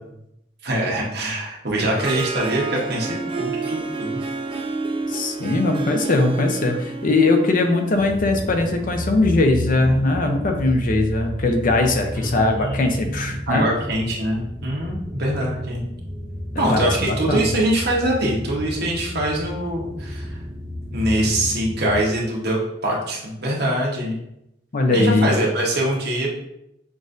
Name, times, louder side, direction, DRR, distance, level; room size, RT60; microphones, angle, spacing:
voice 1, 0.6-4.2 12.1-15.8 16.6-20.4 20.9-24.2 24.9-26.3, right 1 dB, 60° right, -2 dB, 1.0 m, -24 dB
Harp, 1.7-8.8, right 3 dB, 30° right, 0.4 m, -29 dB
voice 2, 5.1-13.7 16.7-17.5 24.7-25.3, left 2 dB, 50° left, 4 dB, 0.5 m, -20 dB
sound 1, 7.9-22.0, equal, 5° left, 0.8 m, -32 dB
6.0 x 2.5 x 2.5 m, 0.81 s
head